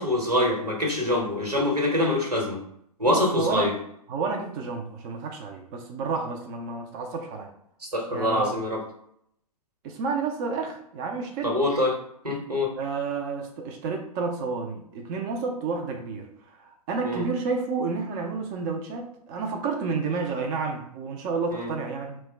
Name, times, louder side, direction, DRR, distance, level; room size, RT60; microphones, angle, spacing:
voice 1, 0.0-2.6 3.0-3.7 7.9-8.8 11.4-11.9 12.2-12.7 17.0-17.2 21.5-21.7, left 1 dB, 90° right, 0 dB, 1.0 m, -24 dB
voice 2, 3.0-3.7 4.1-7.5 8.1-8.5 9.8-11.6 12.8-22.2, right 4 dB, 30° right, 2 dB, 0.4 m, -30 dB
2.9 x 2.1 x 3.3 m, 0.72 s
figure-of-eight pair, 110°, 20 cm